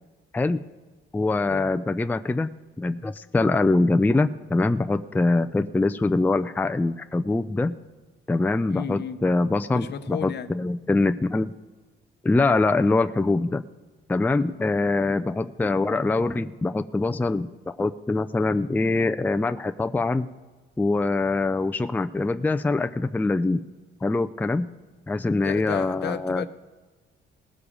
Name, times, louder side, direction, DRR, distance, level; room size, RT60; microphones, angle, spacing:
voice 1, 1.1-2.5 2.8-7.7 8.3-11.5 12.2-13.6 14.1-20.3 20.8-23.6 24.0-24.7 25.1-26.5, left 2 dB, 10° left, 9 dB, 0.4 m, -23 dB
voice 2, 8.7-9.2 9.7-10.5 14.3-14.6 25.4-26.5, left 8 dB, 60° left, 11 dB, 0.8 m, -33 dB
19.0 x 7.0 x 5.0 m, 1.3 s
cardioid pair, 90°, 20 cm